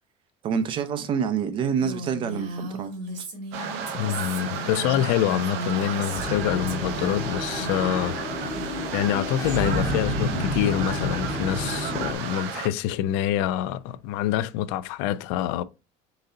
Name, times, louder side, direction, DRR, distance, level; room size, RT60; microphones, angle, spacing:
voice 1, 0.4-2.9 3.2-3.3, right 7 dB, 35° right, 0.6 m, -27 dB
Female speech woman speaking, 1.8-6.4 6.7-7.2 7.5-8.1 8.4-9.1, right 1 dB, 60° right, 1.7 m, -37 dB
sound 1, 3.5-12.7, right 7 dB, 75° right, 0.8 m, -33 dB
voice 2, 3.9-8.2 8.9-15.6, left 11 dB, 75° left, 0.4 m, -26 dB
sound 2, 6.1-12.1, left 2 dB, 20° left, 0.9 m, -30 dB
4.0 x 3.9 x 2.6 m
cardioid pair, 155°, 14 cm